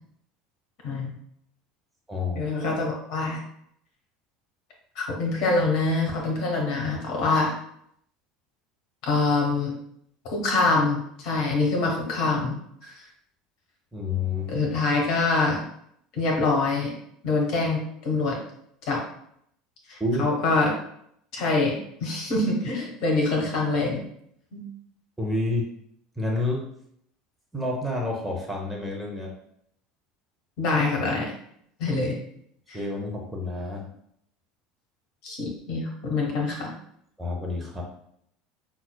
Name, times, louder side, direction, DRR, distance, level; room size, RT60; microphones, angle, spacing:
voice 1, 0.8-1.1 2.3-3.4 4.9-7.5 9.0-9.7 10.2-12.5 12.8-13.0 14.5-15.6 16.1-16.9 17.2-18.4 18.9-19.0 19.9-20.7 21.3-24.0 24.5-24.6 30.6-31.3 31.8-32.2 32.7-32.8 35.2-36.7, left 3 dB, 50° left, -1 dB, 1.1 m, -25 dB
voice 2, 2.1-2.5 13.9-14.7 20.0-20.2 25.2-25.6 26.2-26.6 27.5-29.3 32.7-33.9 37.2-37.8, left 2 dB, 5° right, -2 dB, 0.8 m, -29 dB
5.7 x 2.4 x 2.2 m, 0.71 s
figure-of-eight pair, 70°, 0 cm